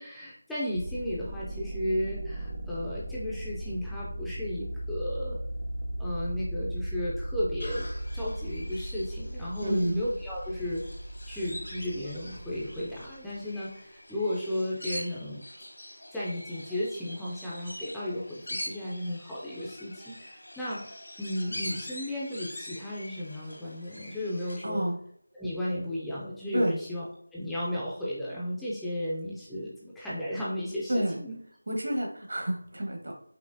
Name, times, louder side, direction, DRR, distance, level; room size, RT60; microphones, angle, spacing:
voice 1, 0.0-5.4 6.0-7.9 8.1-10.8 11.3-15.4 16.1-24.9 25.3-27.0 27.3-31.4, left 1 dB, ahead, -9 dB, 0.4 m, -34 dB
sound 1, 0.7-13.4, right 1 dB, 45° right, 0.7 m, -37 dB
sound 2, 7.6-24.6, left 1 dB, 85° left, 1.7 m, -44 dB
voice 2, 9.6-10.0 24.6-25.0 26.5-26.8 30.9-31.2 31.7-33.2, right 1 dB, 70° right, 0 dB, 1.4 m, -29 dB
5.3 x 3.0 x 2.6 m, 0.66 s
figure-of-eight pair, 175°, 0 cm